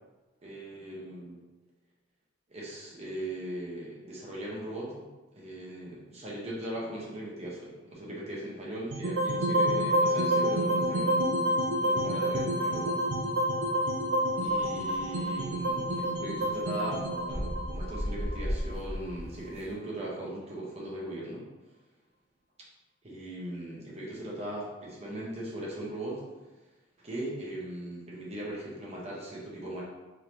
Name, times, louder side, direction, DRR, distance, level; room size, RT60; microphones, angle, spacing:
voice 1, 0.4-1.4 2.5-5.1 5.3-13.4 14.3-21.5 23.0-26.2 27.0-29.8, right 1 dB, 35° right, -5 dB, 1.0 m, -39 dB
sound 1, 8.9-19.1, equal, 80° right, 0.6 m, -28 dB
sound 2, 14.4-19.7, equal, 5° right, 1.2 m, -37 dB
3.8 x 3.2 x 2.9 m, 1.1 s
head